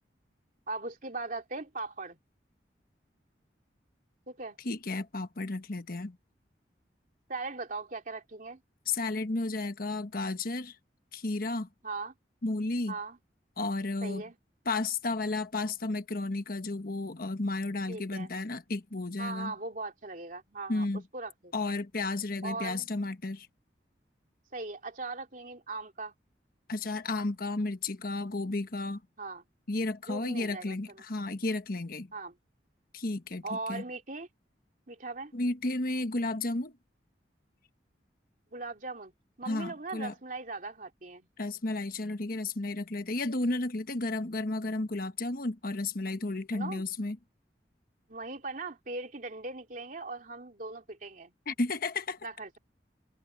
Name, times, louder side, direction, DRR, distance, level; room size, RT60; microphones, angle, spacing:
voice 1, 0.7-2.2 4.3-4.6 7.3-8.6 11.8-12.1 12.9-13.2 14.0-14.4 17.9-18.3 19.2-20.9 21.1-21.5 22.4-22.9 24.5-26.1 29.2-29.4 30.0-31.0 32.1-32.4 33.4-34.3 34.9-35.3 38.5-39.1 39.4-41.3 46.5-46.8 48.1-51.3 52.2-52.6, right 3 dB, 50° right, 3.1 m, -39 dB
voice 2, 4.6-6.2 8.9-10.7 11.1-11.7 12.4-12.9 13.6-14.2 14.6-19.5 20.7-21.0 21.5-23.5 26.7-29.0 29.7-32.1 32.9-33.8 35.3-36.7 39.5-40.1 41.4-47.2 51.5-52.2, left 2 dB, 55° left, 1.2 m, -33 dB
open air
head